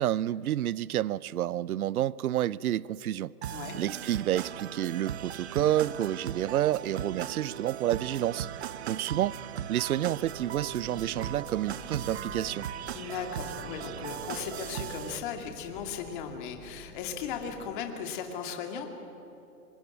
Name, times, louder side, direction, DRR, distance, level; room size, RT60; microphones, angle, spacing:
voice 1, 0.0-3.3 3.7-8.5 8.9-9.4 9.7-12.7, right 12 dB, 65° right, 0.6 m, -29 dB
sound 1, 3.4-15.2, right 10 dB, 45° right, 0.9 m, -38 dB
sound 2, 10.2-17.5, equal, 5° left, 6.7 m, -50 dB
voice 2, 12.9-18.8, left 7 dB, 30° left, 2.5 m, -37 dB
25.0 x 20.5 x 8.5 m
hypercardioid pair, 160°, 47 cm